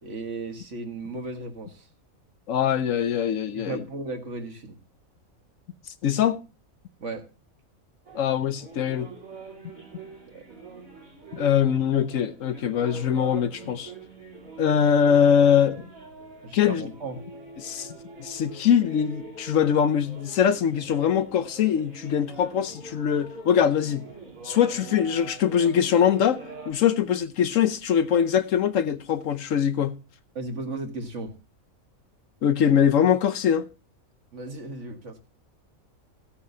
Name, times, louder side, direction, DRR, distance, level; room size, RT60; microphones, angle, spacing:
voice 1, 0.0-1.9 3.5-4.8 7.0-7.2 10.3-10.4 16.4-17.2 30.4-31.3 34.3-35.2, right 3 dB, 60° right, 1.9 m, -35 dB
voice 2, 2.5-3.8 6.0-6.4 8.1-9.1 11.3-13.9 14.6-15.9 16.5-16.9 17.6-17.9 18.2-24.0 24.4-30.0 32.4-33.6, left 8 dB, 70° left, 1.1 m, -22 dB
sound 1, 8.0-26.7, right 3 dB, 80° right, 3.7 m, -44 dB
15.0 x 8.5 x 2.7 m
omnidirectional pair, 1.4 m